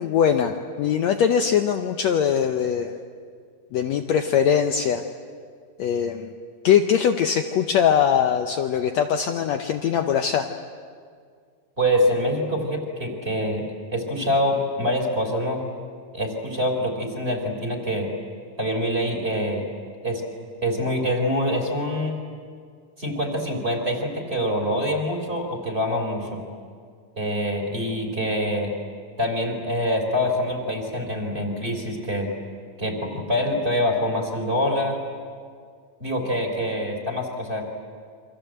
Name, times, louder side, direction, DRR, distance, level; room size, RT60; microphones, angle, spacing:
voice 1, 0.0-2.9 3.7-5.0 5.8-6.4 6.6-10.5, left 8 dB, 80° left, 5 dB, 1.6 m, -21 dB
voice 2, 11.8-13.6 13.9-15.6 16.1-18.1 18.6-19.7 20.0-20.2 20.6-22.2 23.0-26.4 27.2-28.7 29.2-32.3 32.8-35.0 36.0-37.6, equal, 15° right, 2 dB, 3.6 m, -25 dB
28.5 x 25.0 x 7.9 m, 2.1 s
omnidirectional pair, 4.2 m